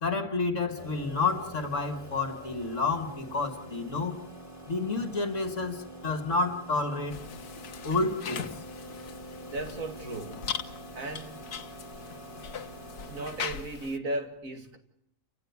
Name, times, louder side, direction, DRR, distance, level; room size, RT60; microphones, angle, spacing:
voice 1, 0.0-4.2 4.7-7.2 7.8-8.4, left 3 dB, 55° left, 2.3 m, -30 dB
sound 1, 0.8-13.3, right 1 dB, 10° left, 4.3 m, -46 dB
sound 2, 7.1-14.0, left 7 dB, 85° left, 1.7 m, -40 dB
voice 2, 9.5-10.4 10.9-11.5 12.2-12.3 13.1-14.8, right 2 dB, 60° right, 2.8 m, -36 dB
29.5 x 17.0 x 9.7 m
omnidirectional pair, 1.6 m